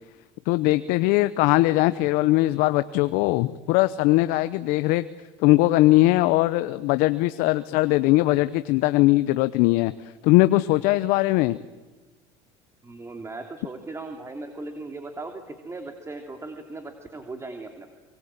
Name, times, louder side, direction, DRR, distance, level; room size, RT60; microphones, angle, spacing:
voice 1, 0.5-5.0 5.4-9.9 10.2-11.6, left 18 dB, 70° left, 13 dB, 0.9 m, -20 dB
voice 2, 12.8-17.9, right 2 dB, 20° right, 4 dB, 2.9 m, -38 dB
24.5 x 24.0 x 8.9 m, 1.2 s
supercardioid pair, 90°, 15 cm